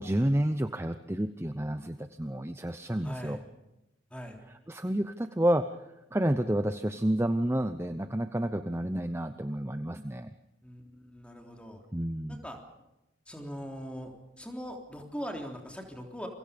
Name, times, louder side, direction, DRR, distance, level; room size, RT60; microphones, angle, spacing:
voice 1, 0.0-3.4 4.7-5.7 6.1-10.3 11.9-12.4, right 1 dB, 15° right, 9 dB, 0.7 m, -30 dB
voice 2, 3.0-3.4 4.1-4.4 10.6-11.8 12.3-12.6 13.3-16.3, equal, 5° left, 2 dB, 3.4 m, -41 dB
29.0 x 23.5 x 5.3 m, 0.94 s
head